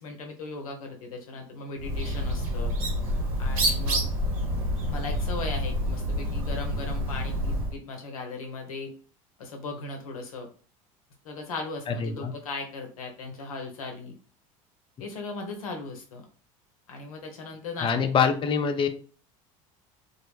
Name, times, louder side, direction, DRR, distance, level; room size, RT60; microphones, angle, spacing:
voice 1, 0.0-2.7 3.4-4.0 4.9-8.9 9.4-10.5 11.2-14.1 15.0-16.3 16.9-17.9, left 3 dB, 90° left, 3 dB, 0.7 m, -37 dB
Bird, 1.8-7.8, equal, 80° right, 0.9 m, -28 dB
voice 2, 11.9-12.3 17.8-18.9, left 6 dB, 30° left, 7 dB, 0.4 m, -24 dB
2.2 x 2.0 x 3.0 m, 0.39 s
hypercardioid pair, 80°, 18 cm